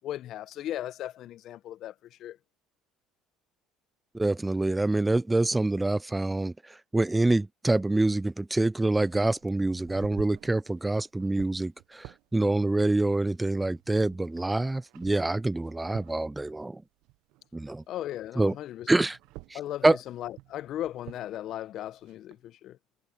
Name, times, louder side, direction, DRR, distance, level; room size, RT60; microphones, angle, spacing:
voice 1, 0.0-2.4 12.3-12.6 17.9-19.1 19.5-22.8, left 12 dB, 60° left, 1.2 m, -37 dB
voice 2, 4.1-6.5 6.9-16.8 17.5-17.8 18.4-18.5 18.9-19.2 19.8-20.0, right 2 dB, 15° right, 0.5 m, -26 dB
sound 1, 8.7-17.9 18.2-22.4, right 20 dB, 70° right, 1.2 m, -51 dB
hypercardioid pair, 70°, 0 cm